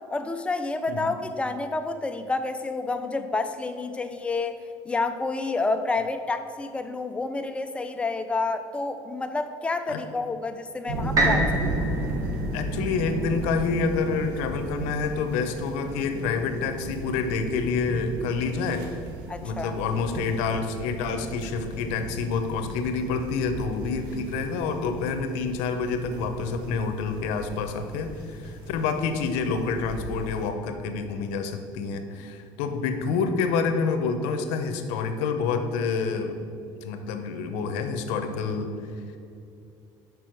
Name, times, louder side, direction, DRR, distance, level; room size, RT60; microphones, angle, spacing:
voice 1, 0.1-4.6 4.9-11.8 19.3-19.8, left 3 dB, 10° left, 8 dB, 0.4 m, -29 dB
sound 1, 10.9-30.5, right 1 dB, 90° right, 1.0 m, -35 dB
sound 2, 11.2-15.1 15.7-15.8, right 2 dB, 40° right, 1.4 m, -29 dB
voice 2, 12.5-19.0 19.4-36.4 36.8-38.7, left 5 dB, 80° left, 7 dB, 0.7 m, -28 dB
6.1 x 5.3 x 4.5 m, 2.6 s
cardioid pair, 130°, 10 cm